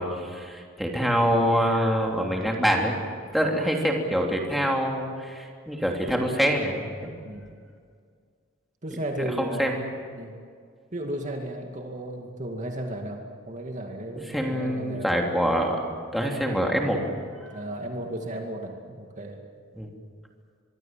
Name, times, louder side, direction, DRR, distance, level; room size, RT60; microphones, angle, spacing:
voice 1, 0.0-3.0 3.3-7.1 9.2-9.8 14.1-17.0 17.4-17.5 19.8-19.9, equal, ahead, 0 dB, 3.0 m, -25 dB
voice 2, 8.8-9.8 10.1-10.3 10.9-15.1 17.5-19.4, right 1 dB, 35° right, 2 dB, 2.3 m, -34 dB
25.0 x 23.0 x 7.6 m, 2.1 s
head